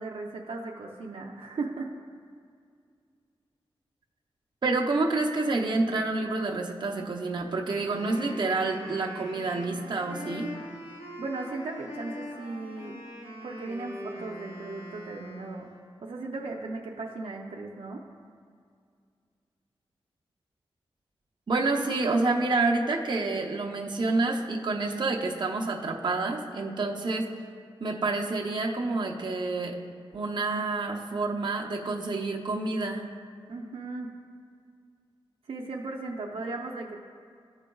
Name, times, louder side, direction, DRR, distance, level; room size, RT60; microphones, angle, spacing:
voice 1, 0.0-1.9 11.2-12.9 13.4-15.6 16.0-18.0 33.5-34.1 35.5-37.0, right 3 dB, 80° right, -1 dB, 0.6 m, -36 dB
voice 2, 4.6-10.5 21.5-27.3 27.8-29.8 30.1-33.1, right 3 dB, 50° right, 0 dB, 0.8 m, -28 dB
Wind instrument woodwind instrument, 7.7-15.9, left 1 dB, 70° left, 1.5 m, -42 dB
14.0 x 4.9 x 2.3 m, 2.2 s
wide cardioid pair, 100°, 10 cm